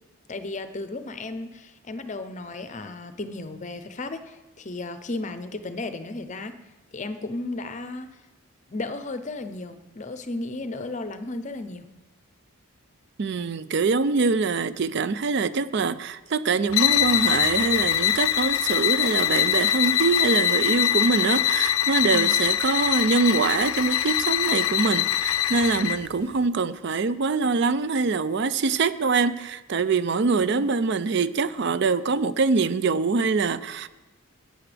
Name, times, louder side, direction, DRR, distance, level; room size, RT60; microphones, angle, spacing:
voice 1, 0.3-6.6 6.9-8.1 8.7-11.9 22.1-22.3 30.5-30.7, left 2 dB, 35° left, 0.6 m, -34 dB
voice 2, 13.2-33.9, right 4 dB, 50° right, 0.4 m, -24 dB
sound 1, 16.7-26.1, left 11 dB, 75° left, 0.4 m, -23 dB
16.0 x 9.1 x 3.4 m
head